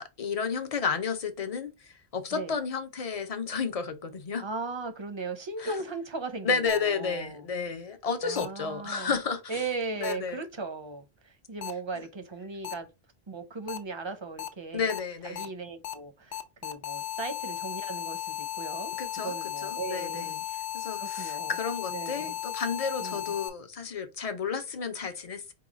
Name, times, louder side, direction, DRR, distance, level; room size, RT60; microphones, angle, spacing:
voice 1, 0.0-4.5 5.6-5.8 6.4-9.6 10.0-10.4 14.7-15.5 18.9-20.4 20.7-25.5, left 5 dB, 40° left, 0.6 m, -32 dB
voice 2, 4.4-7.4 8.2-9.1 9.5-12.9 13.3-14.9 15.2-18.9 19.2-20.6 21.0-21.6 21.9-22.4 23.0-23.3, right 3 dB, 35° right, 0.5 m, -37 dB
sound 1, 6.7-6.8 8.4-8.5 10.0-10.1 11.6-11.7 12.6-12.7 13.7-13.8 14.4-14.5 14.9-15.0 15.4-15.5 15.8-15.9 16.3-23.5, left 11 dB, 90° left, 1.0 m, -35 dB
4.7 x 2.3 x 3.9 m
omnidirectional pair, 1.1 m